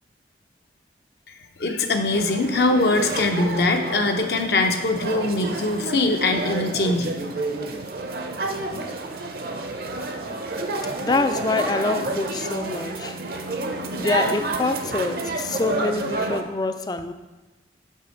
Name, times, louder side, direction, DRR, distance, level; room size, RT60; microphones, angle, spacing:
voice 1, 1.6-7.1, left 2 dB, 60° left, 4 dB, 0.6 m, -22 dB
sound 1, 2.1-16.4, right 2 dB, 55° right, 0.6 m, -30 dB
voice 2, 11.0-13.1 14.0-17.1, left 3 dB, 20° left, 9 dB, 0.3 m, -25 dB
6.0 x 5.5 x 5.0 m, 1.2 s
head